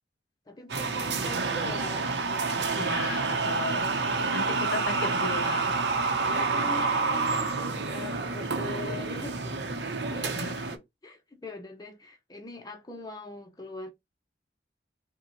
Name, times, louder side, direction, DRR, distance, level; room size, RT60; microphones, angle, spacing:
voice 1, 0.5-3.4 3.7-4.3 6.3-9.4 10.1-13.9, left 3 dB, 20° left, 0.5 m, -42 dB
sound 1, 0.7-10.8, right 4 dB, 75° right, 0.7 m, -28 dB
voice 2, 2.8-3.9 4.3-5.8 10.3-10.5, left 3 dB, 75° left, 0.6 m, -35 dB
5.2 x 2.1 x 2.9 m
head